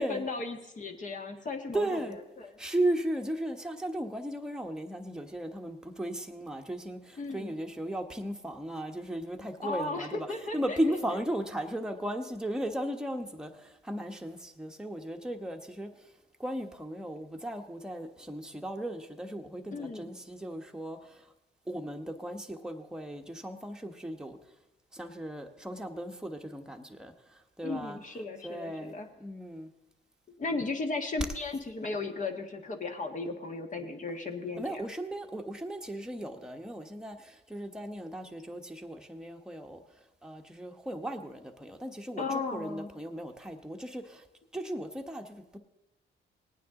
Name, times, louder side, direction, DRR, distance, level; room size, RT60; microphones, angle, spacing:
voice 1, 0.0-2.5 7.2-7.5 9.6-10.8 19.7-20.1 27.6-29.1 30.4-34.8 42.2-42.9, left 3 dB, 40° left, 4 dB, 1.5 m, -36 dB
voice 2, 1.7-2.2 2.6-13.5 13.8-15.9 16.4-21.0 21.7-24.4 24.9-27.1 27.6-28.9 29.2-29.7 34.6-39.8 40.2-44.2 44.5-45.6, right 1 dB, 5° right, 3 dB, 1.2 m, -36 dB
18.5 x 9.3 x 3.8 m, 0.95 s
cardioid pair, 90°, 20 cm